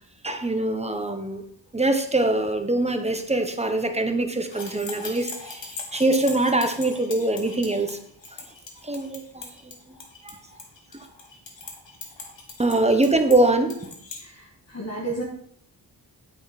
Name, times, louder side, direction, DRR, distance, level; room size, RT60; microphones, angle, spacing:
voice 1, 0.2-1.4 1.7-8.0 8.8-9.5 9.9-10.0 10.2-10.4 12.6-13.8, right 2 dB, 15° right, 6 dB, 1.2 m, -23 dB
sound 1, 4.4-14.2, left 4 dB, 90° left, 1.9 m, -40 dB
voice 2, 14.2-15.2, right 2 dB, 35° left, -3 dB, 1.9 m, -33 dB
9.6 x 8.0 x 4.3 m, 0.63 s
wide cardioid pair, 95°, 43 cm